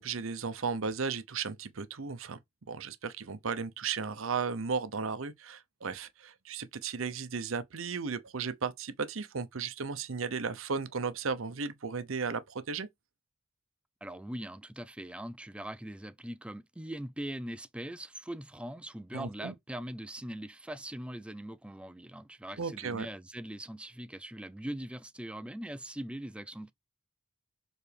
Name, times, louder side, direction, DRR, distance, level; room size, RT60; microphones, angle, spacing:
voice 1, 0.0-2.4 2.7-12.9 19.1-19.5 22.6-23.1, right 5 dB, 75° right, 0.8 m, -35 dB
voice 2, 14.0-26.7, right 1 dB, 5° right, 0.4 m, -41 dB
6.9 x 4.0 x 3.4 m
head